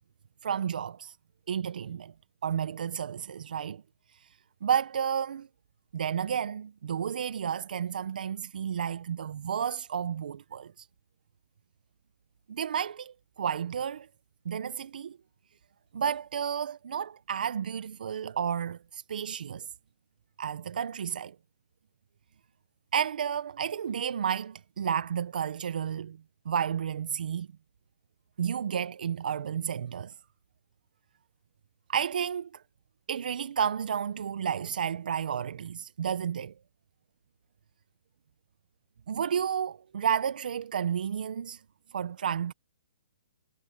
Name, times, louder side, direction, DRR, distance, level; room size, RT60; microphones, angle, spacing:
voice 1, 0.4-1.2 1.5-2.1 2.4-3.8 4.6-5.5 5.9-10.9 12.5-14.1 14.4-15.2 15.9-19.7 20.4-21.3 22.9-26.2 26.4-27.5 28.4-30.1 31.9-32.6 33.1-36.5 39.1-41.6 41.9-42.5, right 8 dB, 65° right, 1.1 m, -31 dB
hypercardioid pair, 150°, 5 cm